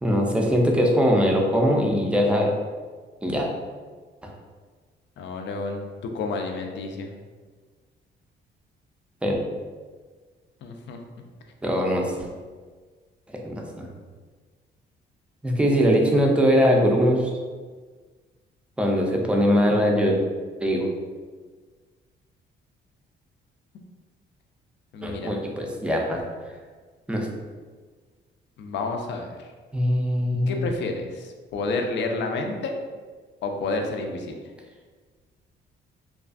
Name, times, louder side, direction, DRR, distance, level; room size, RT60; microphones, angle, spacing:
voice 1, 0.0-2.5 3.2-3.5 4.2-4.3 9.2-9.3 11.6-12.3 13.3-13.9 15.4-17.3 18.8-20.2 20.6-20.9 25.0-26.6 27.1-27.3 29.7-30.7, equal, 5° right, 0 dB, 0.4 m, -22 dB
voice 2, 5.2-7.1 10.6-11.0 24.9-25.3 28.6-29.5 30.5-32.8 33.4-34.4, left 3 dB, 65° left, 3 dB, 0.4 m, -30 dB
2.4 x 2.3 x 2.4 m, 1.5 s
cardioid pair, 90°, 20 cm